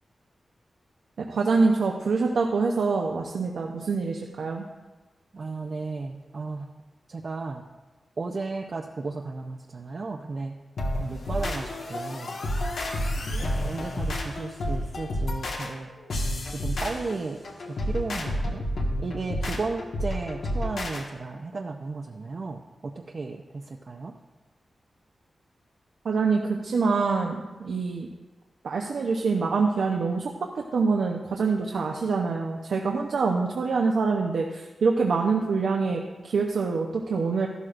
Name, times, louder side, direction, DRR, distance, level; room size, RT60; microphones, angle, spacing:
voice 1, 1.2-4.7 26.0-28.1 28.6-37.5, right 4 dB, 85° right, 1 dB, 0.7 m, -25 dB
voice 2, 5.3-6.7 7.1-7.7 8.2-10.5 11.0-12.3 13.4-15.9 16.4-17.4 17.7-18.6 19.0-24.1, right 3 dB, 45° right, 1 dB, 0.5 m, -34 dB
sound 1, 10.8-21.0, left 1 dB, 90° left, 1.5 m, -30 dB
14.0 x 12.0 x 2.5 m, 1.2 s
wide cardioid pair, 130°, 0 cm